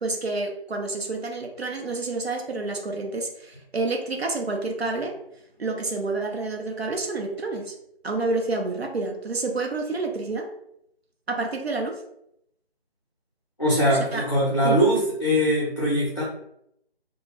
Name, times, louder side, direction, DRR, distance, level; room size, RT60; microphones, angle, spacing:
voice 1, 0.0-5.2 5.6-7.7 8.0-10.5 11.3-12.0 14.1-14.3 14.6-14.8, right 3 dB, 75° right, 2 dB, 0.6 m, -29 dB
voice 2, 13.6-16.2, equal, 30° left, -6 dB, 0.5 m, -21 dB
2.1 x 2.1 x 3.2 m, 0.76 s
figure-of-eight pair, 160°, 31 cm